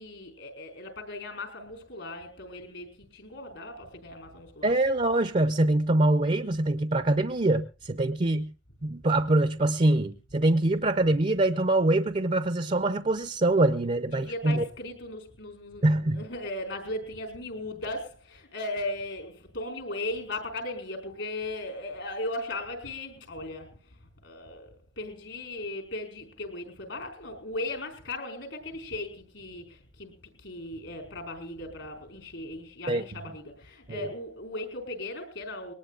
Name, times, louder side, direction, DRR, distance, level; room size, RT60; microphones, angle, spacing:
voice 1, 0.0-4.7 14.1-35.7, left 2 dB, 75° left, 5.0 m, -37 dB
voice 2, 4.6-8.5 8.8-14.6 15.8-16.2 32.9-33.0 33.9-34.1, right 2 dB, 35° right, 0.6 m, -24 dB
21.5 x 19.5 x 2.5 m
head